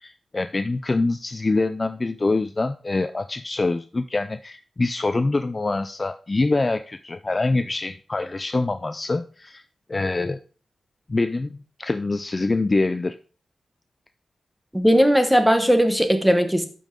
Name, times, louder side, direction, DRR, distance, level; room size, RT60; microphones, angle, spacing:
voice 1, 0.0-9.6 9.9-10.4 11.1-13.2, left 3 dB, 25° left, 10 dB, 0.3 m, -25 dB
voice 2, 14.7-16.7, equal, 5° right, 7 dB, 1.0 m, -18 dB
12.0 x 5.4 x 3.7 m, 0.40 s
wide cardioid pair, 150°, 0 cm